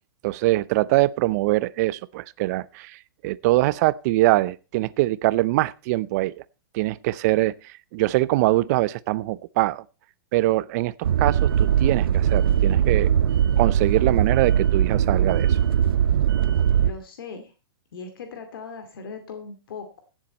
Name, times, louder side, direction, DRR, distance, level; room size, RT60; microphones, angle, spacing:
voice 1, 0.2-6.4 6.7-9.8 10.3-13.1 13.6-15.6, right 18 dB, 45° right, 0.6 m, -23 dB
sound 1, 11.0-16.9, right 9 dB, 80° right, 0.8 m, -20 dB
voice 2, 16.8-17.5 17.9-20.0, left 5 dB, 70° left, 2.5 m, -38 dB
16.5 x 7.4 x 4.2 m
hypercardioid pair, 130°, 12 cm